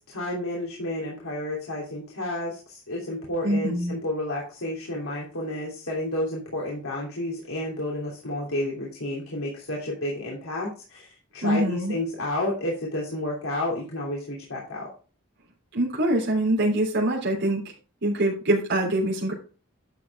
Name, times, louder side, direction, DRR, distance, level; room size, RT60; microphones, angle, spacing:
voice 1, 0.1-14.9, left 1 dB, 90° left, -3 dB, 3.0 m, -31 dB
voice 2, 3.4-3.9 11.4-11.9 15.7-17.6 18.0-19.3, right 1 dB, 55° right, -2 dB, 3.4 m, -24 dB
11.5 x 7.1 x 3.6 m, 0.36 s
head